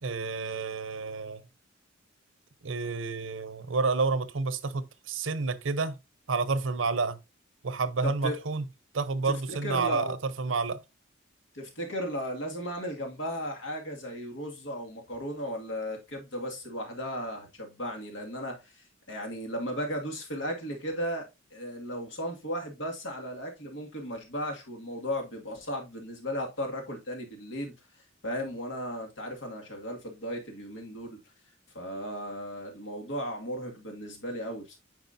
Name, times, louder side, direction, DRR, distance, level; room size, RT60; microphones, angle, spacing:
voice 1, 0.0-1.4 2.6-6.0 6.3-7.2 7.6-8.6 8.9-10.8, right 4 dB, 90° right, 0.7 m, -29 dB
voice 2, 8.0-8.4 9.2-10.2 11.5-21.3 21.5-27.7 28.2-31.2 31.7-34.8, equal, 70° left, 2.1 m, -35 dB
9.2 x 4.9 x 2.6 m
head